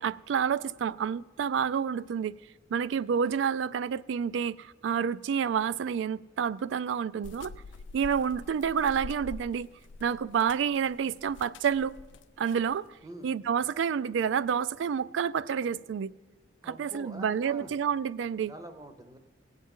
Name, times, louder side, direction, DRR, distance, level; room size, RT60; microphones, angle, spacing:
voice 1, 0.0-2.4 2.7-7.5 7.9-9.7 10.0-11.9 12.4-12.9 13.2-16.1 16.6-18.5, right 7 dB, 85° right, 0.3 m, -29 dB
sound 1, 7.2-12.7, left 3 dB, 85° left, 0.4 m, -46 dB
voice 2, 16.6-17.7 18.5-19.2, right 1 dB, 20° right, 0.6 m, -45 dB
18.5 x 8.1 x 3.7 m
head